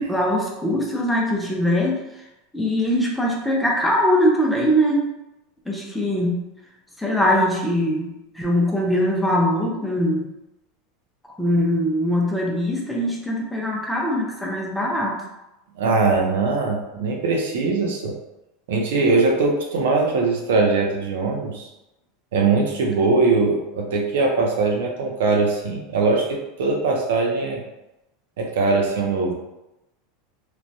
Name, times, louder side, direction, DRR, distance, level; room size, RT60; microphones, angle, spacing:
voice 1, 0.0-2.0 2.5-5.0 5.7-6.4 7.0-8.1 8.4-10.3 11.4-15.2, equal, 5° left, -3 dB, 0.4 m, -21 dB
voice 2, 15.8-18.1 18.7-21.7 22.3-27.6 28.4-29.3, right 3 dB, 85° right, 0 dB, 0.6 m, -21 dB
3.0 x 2.1 x 2.6 m, 0.93 s
supercardioid pair, 160°, 0 cm